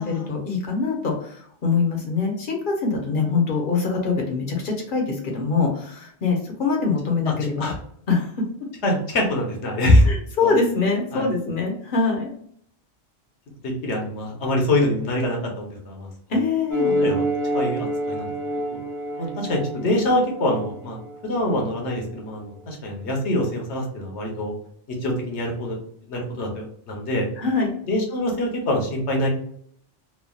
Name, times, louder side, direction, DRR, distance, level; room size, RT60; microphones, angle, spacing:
voice 1, 0.0-7.7 8.1-8.3 10.0-12.3 16.3-16.9 27.4-27.7, left 4 dB, 50° left, 1 dB, 0.9 m, -24 dB
voice 2, 8.8-10.1 10.4-10.5 11.1-11.3 13.6-16.1 17.0-17.3 17.5-18.6 19.2-21.0 21.2-24.5 25.0-25.8 26.1-27.3 27.9-29.3, left 1 dB, 70° left, 0 dB, 1.1 m, -24 dB
sound 1, 16.7-21.7, equal, 20° left, 0.6 m, -27 dB
3.2 x 2.2 x 2.2 m, 0.64 s
omnidirectional pair, 1.2 m